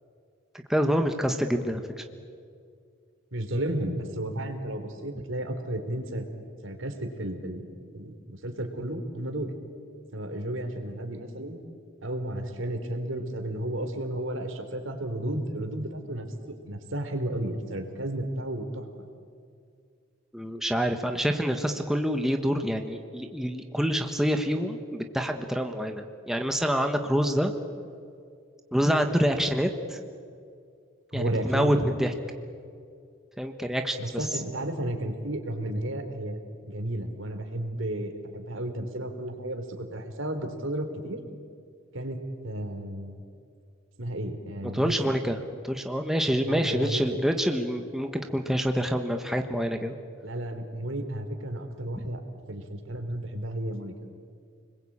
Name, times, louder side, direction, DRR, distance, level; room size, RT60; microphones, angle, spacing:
voice 1, 0.7-2.0 20.3-27.5 28.7-30.0 31.1-32.1 33.4-34.3 44.7-49.9, equal, ahead, 4 dB, 1.3 m, -27 dB
voice 2, 3.3-6.2 6.6-7.7 7.9-9.5 10.1-11.6 12.0-18.9 31.1-31.7 34.0-36.4 36.7-41.2 41.9-42.2 42.4-43.2 44.0-45.1 46.4-47.2 50.2-52.2 52.5-53.9, right 1 dB, 75° right, 6 dB, 3.4 m, -33 dB
30.0 x 21.0 x 8.7 m, 2.3 s
head